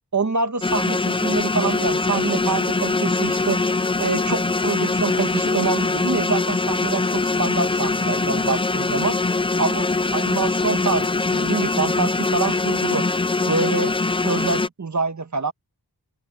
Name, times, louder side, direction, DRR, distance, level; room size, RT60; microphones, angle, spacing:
voice 1, 0.1-3.6 4.0-9.2 9.6-13.1 13.5-13.9 14.2-15.5, right 4 dB, 45° right, 1.4 m, -25 dB
sound 1, 0.6-14.7, left 3 dB, 15° left, 0.4 m, -22 dB
open air
wide cardioid pair, 90°, 40 cm